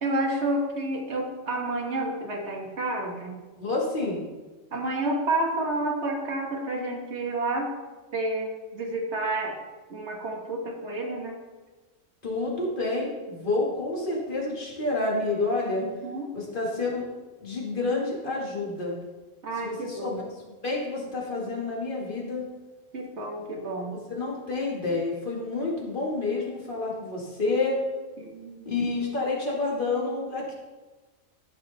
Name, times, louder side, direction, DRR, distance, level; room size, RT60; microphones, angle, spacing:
voice 1, 0.0-3.4 4.7-7.7 8.1-9.6 9.9-11.4 15.8-16.3 19.4-20.2 22.9-24.0 28.2-28.8, right 2 dB, 55° right, 1 dB, 1.8 m, -30 dB
voice 2, 3.6-4.2 12.2-15.8 16.3-17.0 17.4-19.0 19.6-20.2 20.6-22.5 23.9-27.8 28.6-30.5, left 3 dB, 40° left, -4 dB, 2.3 m, -29 dB
13.5 x 5.1 x 4.1 m, 1.3 s
omnidirectional pair, 1.4 m